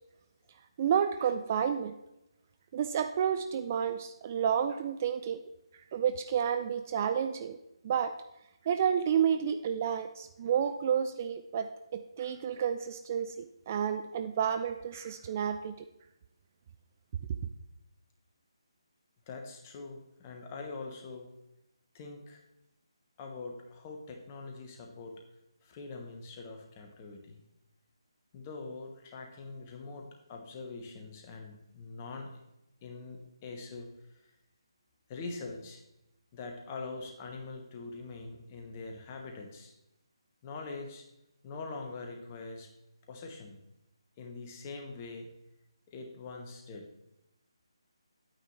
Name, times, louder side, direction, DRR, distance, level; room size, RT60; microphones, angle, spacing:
voice 1, 0.8-1.9 2.7-5.4 5.9-7.6 7.8-8.1 8.7-15.9, right 8 dB, 25° right, 9 dB, 0.3 m, -30 dB
voice 2, 19.3-21.3 21.9-22.4 23.2-25.2 25.6-27.4 28.3-32.3 32.8-34.3 35.1-35.8 36.3-39.7 40.4-41.1 41.4-42.7 43.1-43.6 44.2-45.3 45.9-46.9, left 3 dB, 25° left, 3 dB, 1.1 m, -43 dB
9.0 x 9.0 x 3.2 m, 0.89 s
figure-of-eight pair, 150°, 3 cm